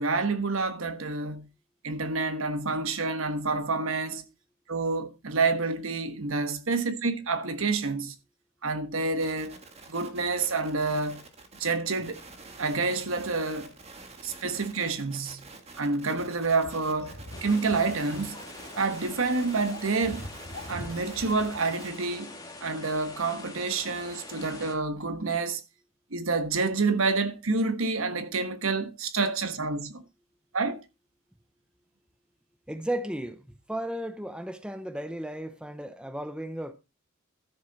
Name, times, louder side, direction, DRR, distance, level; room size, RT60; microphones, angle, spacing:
voice 1, 0.0-1.5 1.8-4.2 4.7-8.1 8.6-9.6 9.9-11.2 11.6-12.1 12.6-13.7 14.2-15.4 15.8-18.3 18.8-20.2 20.7-22.3 22.6-25.6 26.1-30.0 30.5-30.8, right 3 dB, 75° right, 1.3 m, -28 dB
sound 1, 9.2-22.0, right 3 dB, 30° right, 1.7 m, -48 dB
sound 2, 16.6-21.6, left 1 dB, 85° left, 2.7 m, -45 dB
sound 3, 17.3-24.8, left 2 dB, 20° left, 1.9 m, -45 dB
voice 2, 32.7-33.4 33.7-36.7, right 1 dB, 5° right, 0.7 m, -34 dB
13.0 x 6.8 x 4.1 m
head